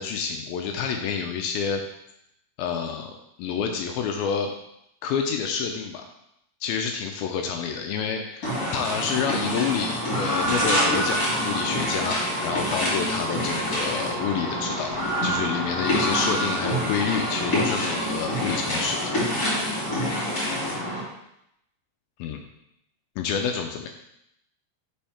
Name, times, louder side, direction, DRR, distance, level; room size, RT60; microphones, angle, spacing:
voice 1, 0.0-1.8 2.6-4.5 5.0-6.0 6.6-19.1 22.2-22.4 23.2-23.9, left 6 dB, 80° left, 4 dB, 2.2 m, -28 dB
sound 1, 8.4-21.0, equal, 25° left, 2.3 m, -26 dB
5.4 x 5.3 x 4.3 m, 0.78 s
omnidirectional pair, 4.7 m